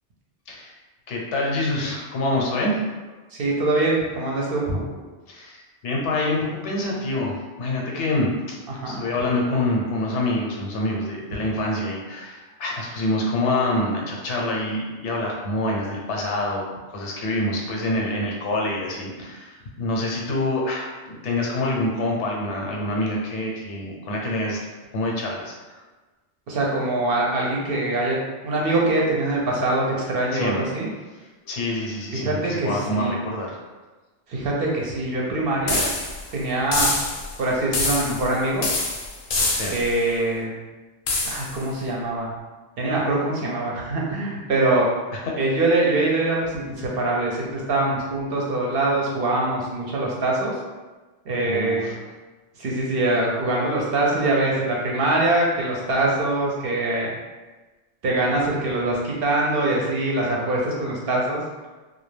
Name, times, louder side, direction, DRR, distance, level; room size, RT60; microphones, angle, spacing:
voice 1, 1.1-2.8 5.3-8.3 8.9-16.6 16.9-24.6 24.9-25.8 30.3-30.6 31.5-33.6 39.5-39.8 51.4-51.9, left 1 dB, 80° left, -1 dB, 0.9 m, -26 dB
voice 2, 3.3-4.8 8.7-9.0 26.5-28.2 28.4-30.9 32.1-33.2 34.3-35.9 36.3-36.9 37.4-38.7 39.6-40.5 41.2-42.3 42.8-44.9 45.4-50.5 51.3-51.9 52.6-57.1 58.0-61.4, right 2 dB, 60° right, -3 dB, 0.7 m, -23 dB
sound 1, 35.7-36.3 36.7-37.3 37.7-38.3 38.6-39.9 41.1-41.6, left 2 dB, 60° left, 0.6 m, -25 dB
2.3 x 2.2 x 3.1 m, 1.2 s
omnidirectional pair, 1.2 m